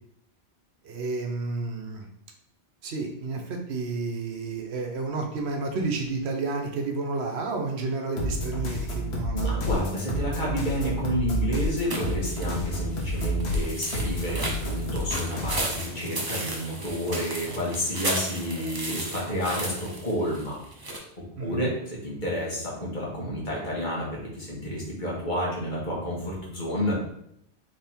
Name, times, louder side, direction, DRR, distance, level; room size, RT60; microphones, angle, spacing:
voice 1, 0.8-2.1 2.8-9.5 21.4-21.7, right 3 dB, 75° right, 3 dB, 1.0 m, -31 dB
sound 1, 8.2-15.8, equal, 70° left, 1.1 m, -30 dB
voice 2, 9.3-20.6 21.4-27.0, equal, 45° left, -5 dB, 1.5 m, -30 dB
sound 2, 11.9-21.0, right 2 dB, 25° right, 0.6 m, -35 dB
3.4 x 3.3 x 4.3 m, 0.74 s
omnidirectional pair, 1.1 m